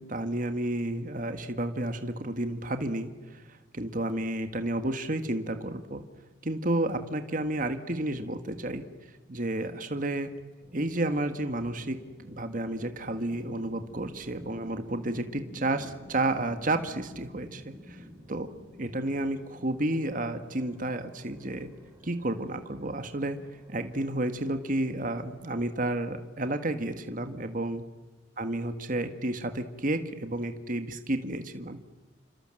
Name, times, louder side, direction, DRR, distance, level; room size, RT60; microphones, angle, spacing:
voice 1, 0.0-3.4 3.7-6.0 6.4-8.8 9.3-10.3 10.7-12.0 12.3-18.5 18.8-21.7 22.0-23.4 23.7-27.8 28.4-31.8, right 1 dB, 45° right, 8 dB, 1.7 m, -31 dB
sound 1, 10.6-25.6, equal, 15° right, 6.8 m, -51 dB
28.5 x 26.0 x 7.8 m, 1.2 s
head